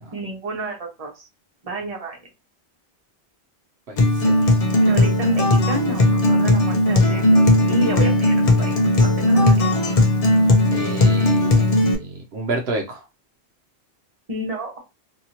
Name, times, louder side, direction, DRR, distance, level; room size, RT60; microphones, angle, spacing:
voice 1, 0.1-1.3 1.6-2.2 4.8-8.7 9.0-9.7 14.3-14.8, right 1 dB, 35° right, 1 dB, 1.0 m, -30 dB
voice 2, 3.9-4.5 10.7-13.0, right 2 dB, 70° right, 2 dB, 0.9 m, -30 dB
Acoustic guitar, 4.0-11.9, left 1 dB, 45° left, 0.5 m, -17 dB
2.8 x 2.7 x 2.7 m, 0.25 s
omnidirectional pair, 1.1 m